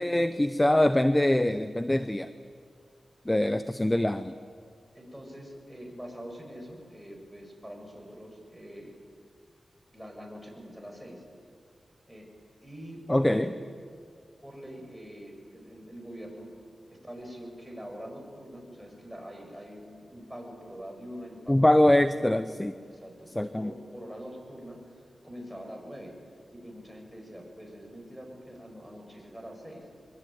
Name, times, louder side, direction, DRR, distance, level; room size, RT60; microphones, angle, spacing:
voice 1, 0.0-2.3 3.3-4.3 13.1-13.5 21.5-22.7 23.4-23.7, left 1 dB, 15° left, 11 dB, 0.9 m, -23 dB
voice 2, 4.9-8.9 9.9-11.2 12.1-12.3 12.6-13.6 14.4-16.5 16.9-22.4 22.9-26.1 26.5-29.9, equal, 5° right, 1 dB, 7.7 m, -44 dB
24.0 x 23.0 x 9.6 m, 2.2 s
cardioid pair, 65°, 0 cm